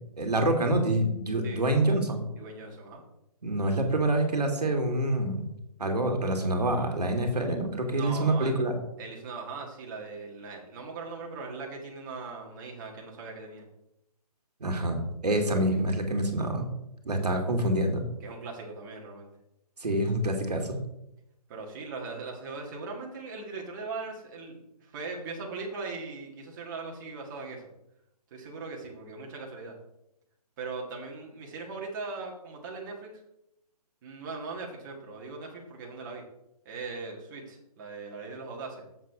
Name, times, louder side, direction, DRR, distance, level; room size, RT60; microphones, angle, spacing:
voice 1, 0.0-2.3 3.4-5.5 5.8-8.8 14.6-16.7 17.1-18.0 19.8-20.8, right 1 dB, 80° right, 4 dB, 2.0 m, -26 dB
voice 2, 2.4-3.0 7.9-8.6 9.0-13.6 17.3-17.4 18.2-19.3 21.5-27.7 28.3-29.7 30.6-33.2 34.0-36.2 36.6-38.8, right 4 dB, 30° right, 0 dB, 1.7 m, -39 dB
7.5 x 6.5 x 4.8 m, 0.84 s
hypercardioid pair, 150°, 20 cm